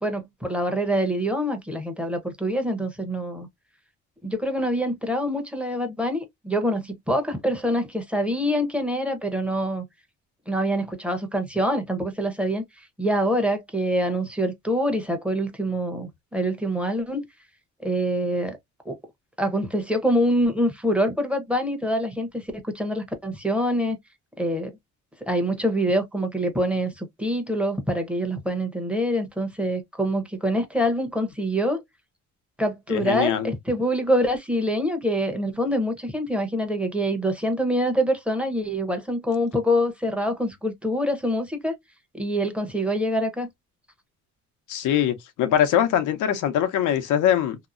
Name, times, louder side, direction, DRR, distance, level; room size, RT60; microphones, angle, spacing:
voice 1, 0.0-3.5 4.2-9.8 10.5-17.3 17.8-18.6 18.8-19.0 19.4-24.0 24.4-24.8 25.3-31.8 32.6-41.7 42.1-43.5, equal, 5° right, 0.9 m, -25 dB
voice 2, 32.9-33.5 44.7-47.6, left 10 dB, 85° left, 0.7 m, -22 dB
2.8 x 2.0 x 2.4 m
cardioid pair, 90°, 30 cm